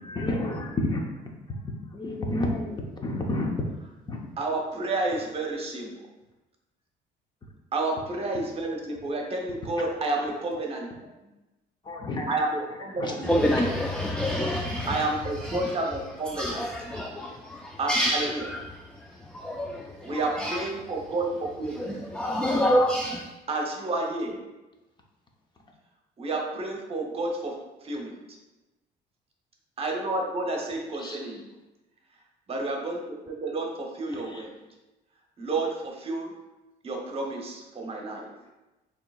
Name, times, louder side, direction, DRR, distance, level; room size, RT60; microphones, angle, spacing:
voice 1, 0.0-1.0 1.9-3.5 4.1-4.2 11.8-12.3 13.0-13.1 31.0-31.3 34.1-34.4, left 1 dB, 25° left, 1 dB, 0.7 m, -30 dB
voice 2, 4.4-5.9 7.7-10.9 12.3-13.5 14.9-16.6 17.8-18.4 20.0-21.9 23.5-24.4 26.2-28.2 29.8-31.5 32.5-34.5 35.4-36.3 36.8-38.3, right 2 dB, 35° right, 1 dB, 0.9 m, -30 dB
voice 3, 13.2-16.0 16.3-20.7 21.7-23.3, equal, 5° left, 1 dB, 0.3 m, -28 dB
6.5 x 2.9 x 2.4 m, 1.0 s
cardioid pair, 110°, 17 cm